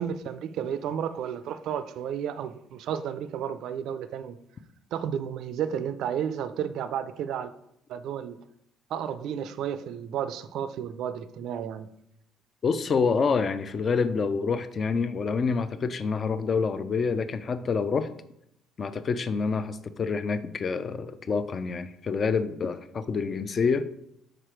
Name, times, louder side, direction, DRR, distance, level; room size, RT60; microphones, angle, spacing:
voice 1, 0.0-4.4 4.9-7.5 7.9-8.4 8.9-11.9, right 8 dB, 65° right, 12 dB, 0.4 m, -32 dB
voice 2, 12.6-18.1 18.8-23.9, left 5 dB, 30° left, 13 dB, 0.4 m, -27 dB
6.5 x 4.9 x 4.4 m, 0.76 s
cardioid pair, 145°, 0 cm